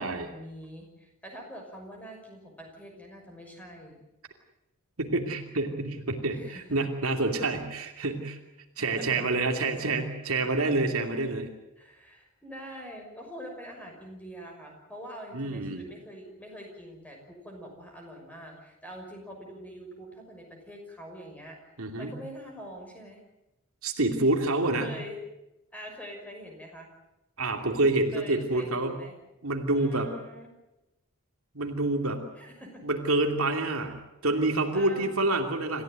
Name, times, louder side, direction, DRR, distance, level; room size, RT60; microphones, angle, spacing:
voice 1, 0.0-4.0 6.3-6.8 8.8-9.4 10.0-10.2 11.8-21.6 22.0-23.2 24.8-25.2 25.7-26.9 28.1-29.1 29.7-30.5 32.3-32.8 34.7-35.3, equal, 5° left, 2 dB, 5.9 m, -44 dB
voice 2, 5.0-8.4 8.8-11.5 15.3-15.8 21.8-22.1 23.8-24.9 27.4-28.9 29.4-30.1 31.5-32.2 32.8-34.0 34.2-35.8, right 2 dB, 75° right, 4 dB, 2.8 m, -27 dB
27.5 x 15.0 x 9.4 m, 0.94 s
head